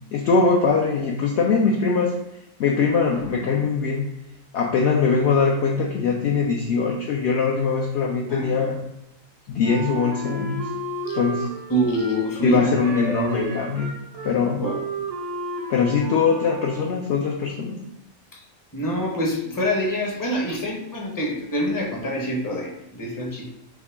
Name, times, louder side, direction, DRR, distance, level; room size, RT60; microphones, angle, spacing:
voice 1, 0.1-2.1 2.6-4.1 4.5-8.8 9.5-10.7 11.1-11.5 12.4-13.9 14.2-14.6 15.7-17.8, left 5 dB, 65° left, 0 dB, 0.8 m, -22 dB
voice 2, 8.3-8.8 11.1-11.2 11.7-12.8 13.3-13.6 14.6-14.8 18.3-18.4 18.7-23.5, equal, 20° left, -2 dB, 0.6 m, -26 dB
Wind instrument woodwind instrument, 9.6-17.2, right 3 dB, 45° right, 0.6 m, -33 dB
4.7 x 2.9 x 3.4 m, 0.81 s
omnidirectional pair, 1.4 m